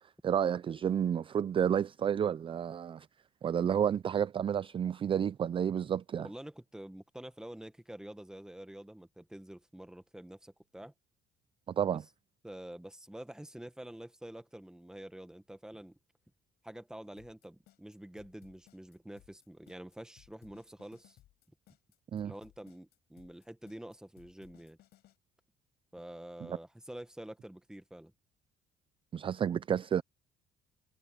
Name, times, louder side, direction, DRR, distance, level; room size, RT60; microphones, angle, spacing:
voice 1, 0.2-3.1 3.4-6.3 11.7-12.0 22.1-22.3 26.5-26.6 29.1-30.0, right 8 dB, 30° right, 0.4 m, -30 dB
voice 2, 6.2-10.9 12.4-16.0 16.6-21.2 22.2-24.8 25.9-28.1, right 1 dB, 5° right, 1.5 m, -47 dB
sound 1, 17.2-25.2, left 14 dB, 75° left, 5.0 m, -63 dB
cardioid pair, 110°, 17 cm